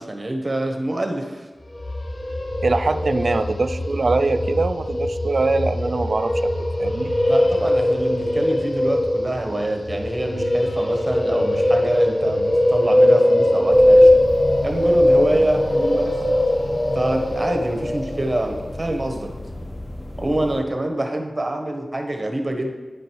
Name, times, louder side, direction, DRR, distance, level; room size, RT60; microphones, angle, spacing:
voice 1, 0.0-1.5 7.3-14.1 14.6-16.4 16.9-19.3 20.2-22.7, right 1 dB, 35° right, 4 dB, 1.2 m, -26 dB
sound 1, 1.7-18.7, left 1 dB, 65° left, 1.3 m, -20 dB
voice 2, 2.6-6.5 6.8-7.1, right 3 dB, 70° right, 10 dB, 0.4 m, -22 dB
sound 2, 13.7-20.6, left 1 dB, 25° left, 0.9 m, -34 dB
9.7 x 5.1 x 4.6 m, 1.3 s
wide cardioid pair, 65°, 0 cm